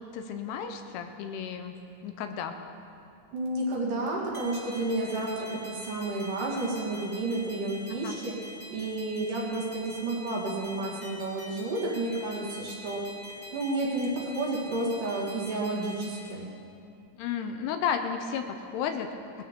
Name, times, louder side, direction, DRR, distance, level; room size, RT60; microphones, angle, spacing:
voice 1, 0.1-1.8 2.0-2.6 7.9-8.2 17.2-19.1, left 7 dB, 80° left, 6 dB, 2.6 m, -33 dB
voice 2, 3.3-8.4 8.7-13.0 13.3-16.5, right 2 dB, 55° right, -4 dB, 3.1 m, -31 dB
sound 1, 4.3-16.2, left 1 dB, 20° right, 1.4 m, -46 dB
20.0 x 13.5 x 3.6 m, 2.6 s
omnidirectional pair, 4.9 m